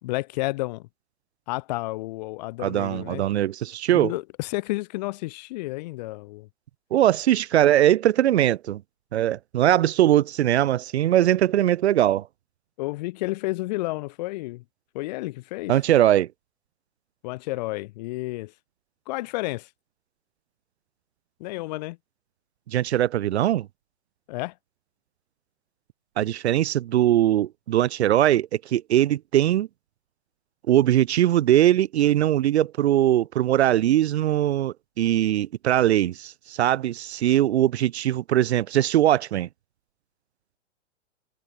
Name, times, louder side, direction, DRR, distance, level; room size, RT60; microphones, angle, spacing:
voice 1, 0.0-0.9 1.5-3.2 3.9-6.5 12.8-14.6 14.9-15.8 17.2-18.5 19.1-19.7 21.4-22.0 24.3-24.5, left 20 dB, 35° left, 2.8 m, -31 dB
voice 2, 2.6-4.1 6.9-8.8 9.1-12.3 15.7-16.3 22.7-23.7 26.2-29.7 30.7-39.5, right 12 dB, 65° right, 0.8 m, -21 dB
hypercardioid pair, 165°, 35 cm